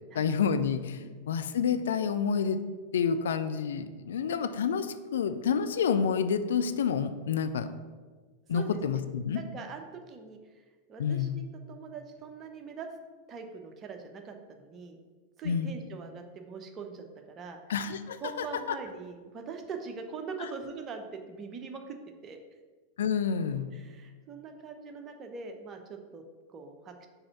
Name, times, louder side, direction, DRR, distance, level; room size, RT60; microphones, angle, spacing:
voice 1, 0.1-2.6 2.9-7.7 8.5-9.4 11.0-11.4 15.4-15.7 17.7-18.8 20.4-20.5 23.0-23.7, left 7 dB, 60° left, 10 dB, 0.4 m, -29 dB
voice 2, 9.3-10.4 10.9-11.4 11.7-12.9 13.3-15.0 15.4-17.6 18.2-22.0 22.2-22.4 23.7-26.2 26.5-27.1, right 5 dB, 25° right, 4 dB, 0.8 m, -42 dB
5.3 x 4.2 x 5.6 m, 1.4 s
figure-of-eight pair, 90°, 0 cm